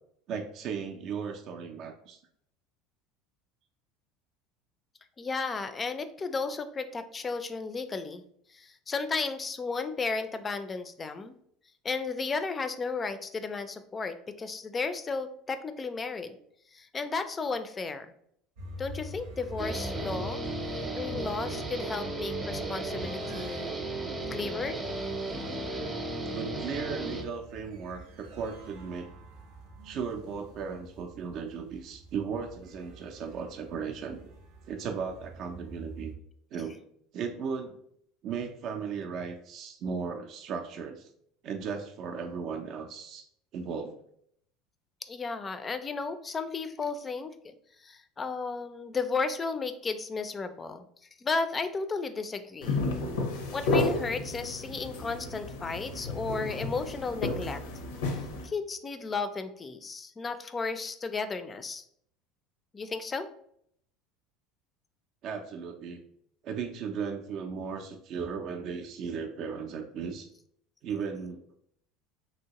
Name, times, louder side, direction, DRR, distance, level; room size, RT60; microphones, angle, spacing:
voice 1, 0.3-2.2 26.3-29.1 29.8-34.3 34.7-36.1 36.5-36.8 37.1-37.8 38.2-41.1 41.4-43.3 43.5-44.0 65.2-66.0 66.4-70.3 70.8-71.6, right 6 dB, 55° right, 3 dB, 0.4 m, -36 dB
voice 2, 5.2-8.2 8.5-11.3 11.8-16.4 16.7-18.1 18.8-20.4 20.7-23.7 24.3-24.8 45.1-47.5 47.8-50.9 51.2-52.8 53.5-57.6 58.4-61.8 62.7-63.3, left 4 dB, 25° left, 11 dB, 0.3 m, -34 dB
sound 1, 18.6-36.2, right 1 dB, 85° right, 0.7 m, -46 dB
Guitar, 19.6-27.2, right 2 dB, 20° right, 0.7 m, -35 dB
sound 2, 52.6-58.5, left 2 dB, 85° left, 0.6 m, -32 dB
3.0 x 2.7 x 2.9 m, 0.68 s
supercardioid pair, 100°, 0 cm